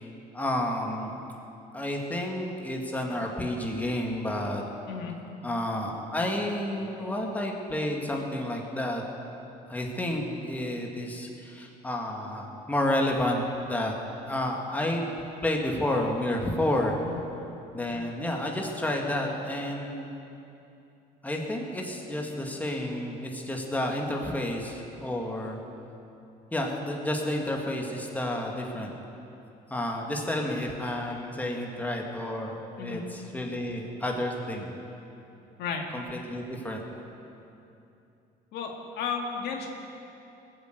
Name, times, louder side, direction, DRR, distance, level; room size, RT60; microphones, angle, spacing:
voice 1, 0.3-1.2 1.7-4.6 5.4-9.0 9.7-13.4 13.7-13.9 14.3-15.0 15.4-17.0 17.7-20.1 21.2-25.6 26.5-28.9 29.7-34.7 35.9-36.8, left 1 dB, 10° left, 0 dB, 2.0 m, -30 dB
voice 2, 4.9-5.2 17.0-17.2 32.8-33.0 35.6-35.9 38.5-39.7, left 6 dB, 80° left, 1 dB, 2.0 m, -33 dB
20.0 x 7.9 x 8.0 m, 2.8 s
cardioid pair, 110°, 17 cm